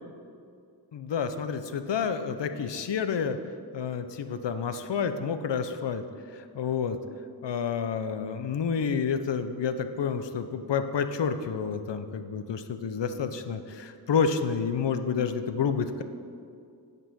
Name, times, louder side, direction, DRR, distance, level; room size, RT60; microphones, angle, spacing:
voice 1, 0.9-3.4 3.7-6.0 6.3-7.0 7.4-16.0, left 6 dB, 75° left, 9 dB, 0.6 m, -29 dB
8.8 x 5.4 x 5.5 m, 2.3 s
wide cardioid pair, 60°, 43 cm